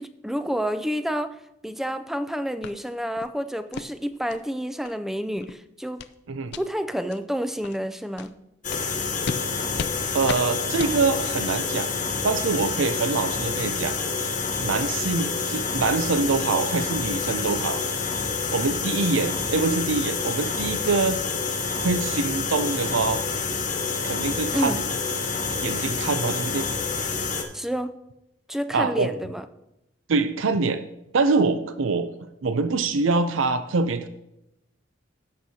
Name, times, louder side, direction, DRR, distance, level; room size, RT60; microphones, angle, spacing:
voice 1, 0.0-1.4 1.6-6.0 6.6-8.3 24.5-24.8 27.5-27.9 28.5-29.4, equal, ahead, 11 dB, 0.4 m, -29 dB
sound 1, 2.6-2.7 3.2-3.3 3.7-3.9 4.3-4.4 4.8-4.9 5.3-5.5 6.0-6.1 6.5-6.6 7.1-7.2 7.6-7.8 8.2-8.3 8.7-8.8 9.2-9.4 9.8-9.9 10.3-10.4 10.8-10.9, left 5 dB, 60° left, 0.5 m, -33 dB
sound 2, 8.6-27.4, left 4 dB, 40° left, 1.2 m, -28 dB
voice 2, 10.1-11.9 12.2-14.0 14.6-17.8 18.5-21.2 21.8-23.2 24.0-24.8 25.5-26.7 28.7-29.1 30.1-30.8 31.1-32.1 32.4-34.1, right 4 dB, 75° right, 10 dB, 0.5 m, -24 dB
16.5 x 6.3 x 2.8 m, 0.87 s
head